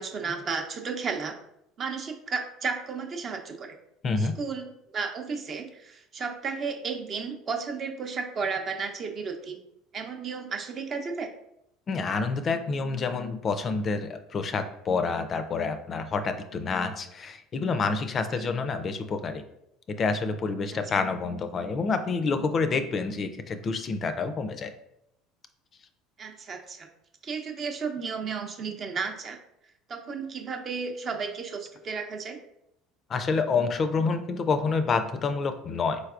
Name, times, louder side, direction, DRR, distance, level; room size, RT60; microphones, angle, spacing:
voice 1, 0.0-1.3 1.8-3.7 4.2-9.6 9.9-11.3 18.3-18.5 20.7-20.8 26.2-26.9 27.2-29.4 29.9-32.4, right 5 dB, 45° right, 4 dB, 0.6 m, -33 dB
voice 2, 4.0-4.3 11.9-19.4 19.9-24.7 33.1-36.0, left 4 dB, 40° left, 9 dB, 0.4 m, -28 dB
4.0 x 3.3 x 2.4 m, 0.80 s
hypercardioid pair, 80°, 0 cm